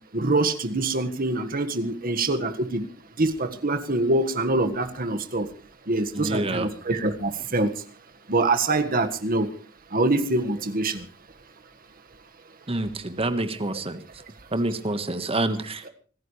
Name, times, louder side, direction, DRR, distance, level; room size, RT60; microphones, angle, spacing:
voice 1, 0.1-2.8 3.2-5.5 5.9-7.7 8.3-9.5 9.9-11.0, right 2 dB, 45° right, 8 dB, 1.6 m, -24 dB
voice 2, 6.1-6.7 12.7-14.0 14.5-15.9, right 2 dB, 30° right, 10 dB, 1.5 m, -27 dB
26.0 x 14.5 x 3.3 m, 0.39 s
head